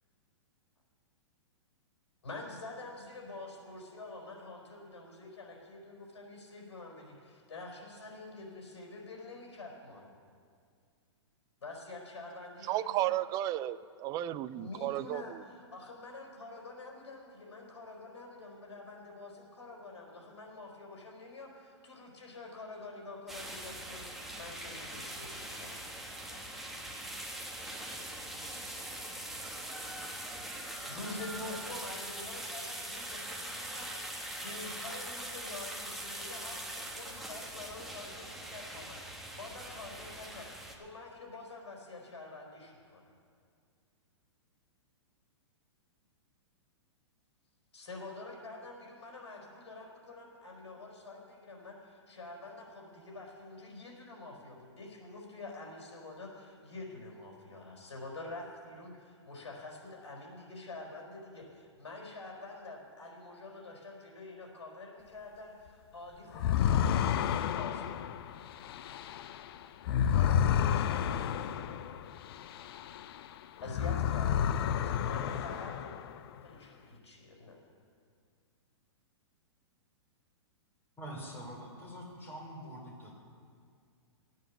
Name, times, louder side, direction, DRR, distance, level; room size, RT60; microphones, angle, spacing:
voice 1, 2.2-10.1 11.6-13.1 14.5-25.8 30.9-43.1 47.7-68.0 70.1-71.8 73.6-75.9 76.4-77.6, left 2 dB, 75° left, -1 dB, 4.3 m, -47 dB
voice 2, 12.7-15.4, right 13 dB, 25° right, 14 dB, 0.4 m, -33 dB
sound 1, 23.3-40.8, right 1 dB, ahead, 1.4 m, -42 dB
sound 2, 66.3-73.3 73.6-76.3, left 9 dB, 55° left, 0.5 m, -31 dB
voice 3, 81.0-83.1, equal, 15° left, -1 dB, 3.5 m, -45 dB
13.5 x 9.3 x 7.1 m, 2.2 s
hypercardioid pair, 130°, 15 cm